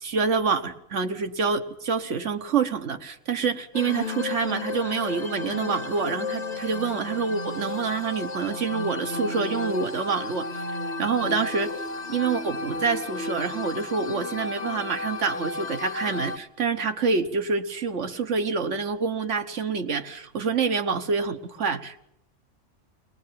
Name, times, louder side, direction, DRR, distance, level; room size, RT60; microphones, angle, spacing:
voice 1, 0.0-10.5 11.0-11.7 12.1-22.0, right 5 dB, 75° right, 7 dB, 1.5 m, -27 dB
sound 1, 3.7-16.4, left 3 dB, 40° left, 1.1 m, -33 dB
21.0 x 20.0 x 7.5 m, 0.76 s
omnidirectional pair, 1.2 m